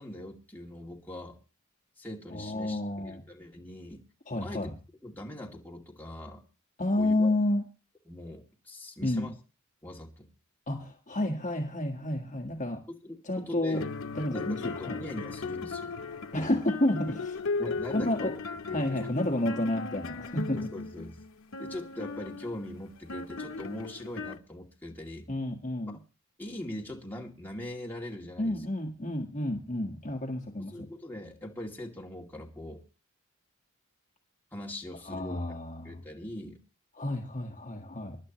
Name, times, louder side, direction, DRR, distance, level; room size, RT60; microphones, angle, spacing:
voice 1, 0.0-1.4 2.0-4.0 4.4-4.8 5.0-6.4 6.9-7.3 8.1-9.3 9.8-10.3 13.0-13.9 14.3-16.0 16.3-16.6 17.6-19.1 20.5-21.2 21.6-25.3 26.4-28.6 30.6-32.8 34.5-35.5 35.8-36.6, left 1 dB, 10° left, 2.6 m, -41 dB
voice 2, 2.3-3.2 4.3-4.7 6.8-7.6 9.0-9.3 10.7-12.9 13.2-13.9 14.1-15.0 16.3-17.3 17.9-18.3 18.7-20.6 25.3-26.0 28.4-30.9 35.1-36.0 37.0-38.2, left 1 dB, 35° left, 1.6 m, -30 dB
sound 1, 13.7-24.4, left 4 dB, 70° left, 0.9 m, -37 dB
23.5 x 11.5 x 3.1 m
head